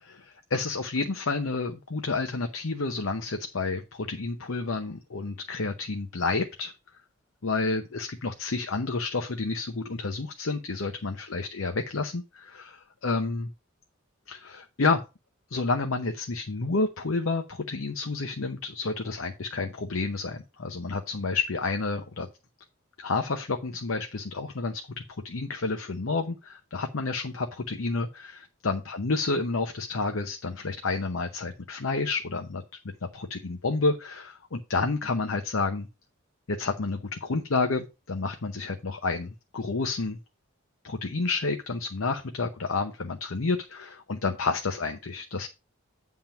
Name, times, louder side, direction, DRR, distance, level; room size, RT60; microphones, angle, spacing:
voice 1, 0.1-6.7 7.4-13.5 14.3-15.0 15.5-22.3 23.0-32.6 33.1-35.9 36.5-40.2 40.8-45.5, left 3 dB, 80° left, 6 dB, 0.8 m, -30 dB
9.0 x 3.7 x 5.8 m, 0.28 s
head